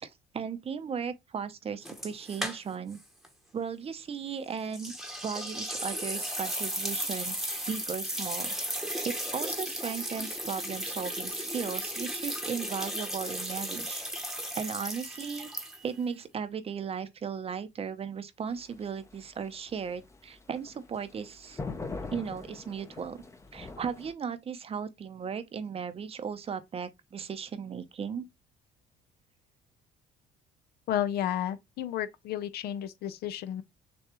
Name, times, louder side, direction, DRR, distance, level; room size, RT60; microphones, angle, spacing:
voice 1, 0.0-3.0 3.5-4.9 5.2-8.5 9.0-14.0 14.6-15.5 15.8-21.6 22.1-23.2 23.5-28.3, right 6 dB, 35° right, 0.7 m, -36 dB
sound 1, 1.9-3.0 3.2-3.3 4.7-16.0, right 1 dB, ahead, 0.9 m, -35 dB
sound 2, 18.5-24.1, left 3 dB, 15° left, 0.6 m, -42 dB
voice 2, 30.9-33.6, left 11 dB, 70° left, 0.6 m, -32 dB
6.8 x 2.3 x 3.0 m
cardioid pair, 110°, 17 cm